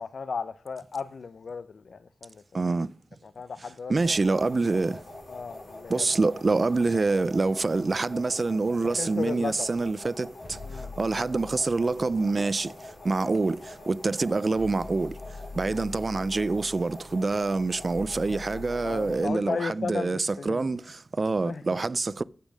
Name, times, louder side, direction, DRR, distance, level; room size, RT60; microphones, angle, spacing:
voice 1, 0.0-2.6 3.2-3.9 5.3-6.1 8.9-9.7 10.6-10.9 18.8-20.7 21.4-21.6, left 5 dB, 80° left, 0.5 m, -35 dB
voice 2, 2.5-2.9 3.9-5.0 5.9-22.2, right 3 dB, 45° right, 0.4 m, -26 dB
sound 1, 3.9-19.3, left 1 dB, 65° left, 5.2 m, -45 dB
sound 2, 10.4-13.0 13.8-13.9 14.2-19.2, left 3 dB, 40° left, 5.8 m, -44 dB
8.2 x 6.6 x 6.3 m
wide cardioid pair, 80°, 0 cm